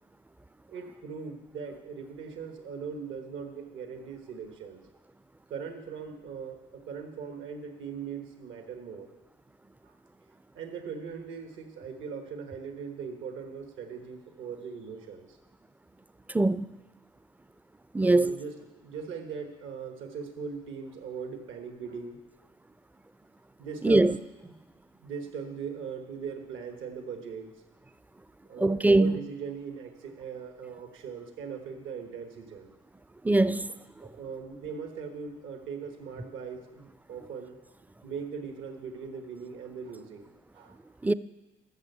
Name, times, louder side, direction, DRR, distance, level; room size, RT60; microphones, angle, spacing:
voice 1, 0.7-4.8 5.5-9.1 9.8-9.9 10.5-15.4 18.0-22.2 23.6-24.1 24.5-24.6 25.0-27.5 28.5-32.7 34.0-37.6 38.0-40.8, right 6 dB, 80° right, 1.4 m, -40 dB
voice 2, 16.3-16.7 17.9-18.4 23.8-24.2 28.6-29.2 33.2-33.7 41.0-41.1, right 2 dB, 10° right, 0.3 m, -22 dB
13.5 x 6.9 x 6.7 m
cardioid pair, 90°, 20 cm